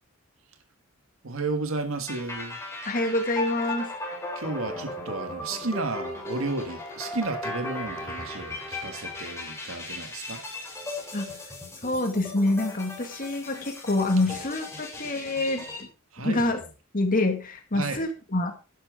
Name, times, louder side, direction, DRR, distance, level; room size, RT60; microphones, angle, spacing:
voice 1, 1.2-2.6 4.3-10.4 11.1-11.2 14.3-14.4 16.1-16.4 17.7-18.1, right 3 dB, 80° right, 1.7 m, -33 dB
sound 1, 2.1-15.8, left 2 dB, 15° left, 3.7 m, -37 dB
voice 2, 2.8-3.9 11.1-11.3 11.8-15.9 16.2-16.6 16.9-18.5, left 2 dB, 45° left, 2.0 m, -26 dB
11.5 x 10.5 x 3.7 m
head